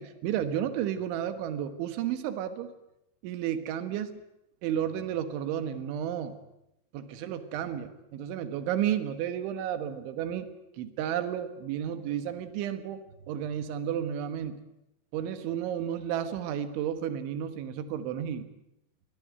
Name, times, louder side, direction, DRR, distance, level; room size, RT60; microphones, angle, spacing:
voice 1, 0.0-2.7 3.2-4.2 4.6-6.4 6.9-10.5 10.8-14.6 15.1-18.5, right 10 dB, 90° right, 10 dB, 3.8 m, -32 dB
23.0 x 17.0 x 9.3 m, 0.88 s
omnidirectional pair, 5.3 m